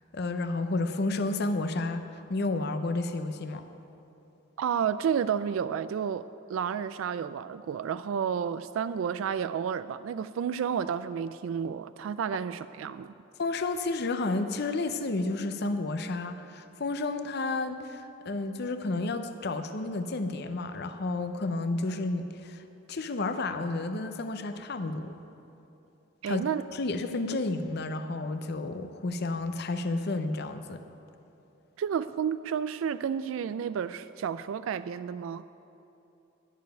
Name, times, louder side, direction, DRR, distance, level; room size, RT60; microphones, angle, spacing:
voice 1, 0.1-2.0 2.3-3.7 13.4-22.6 22.9-25.1 26.3-26.4 26.7-30.8, left 2 dB, 55° left, 8 dB, 0.6 m, -31 dB
voice 2, 4.6-13.1 26.2-26.6 31.8-35.4, right 7 dB, 80° right, 13 dB, 0.3 m, -31 dB
11.0 x 6.8 x 9.1 m, 2.8 s
head